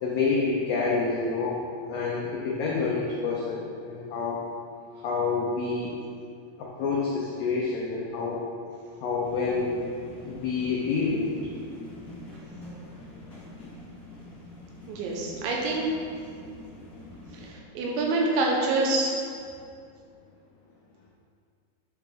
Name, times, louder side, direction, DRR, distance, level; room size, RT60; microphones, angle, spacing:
voice 1, 0.0-4.4 5.0-6.0 6.6-8.5 9.0-9.7 10.2-11.4, left 4 dB, 90° left, -4 dB, 1.9 m, -28 dB
sound 1, 9.2-17.5, left 1 dB, 40° left, 1.2 m, -45 dB
voice 2, 14.9-15.8 17.3-19.2, right 2 dB, 85° right, -1 dB, 3.3 m, -26 dB
9.0 x 6.0 x 3.5 m, 2.3 s
omnidirectional pair, 5.1 m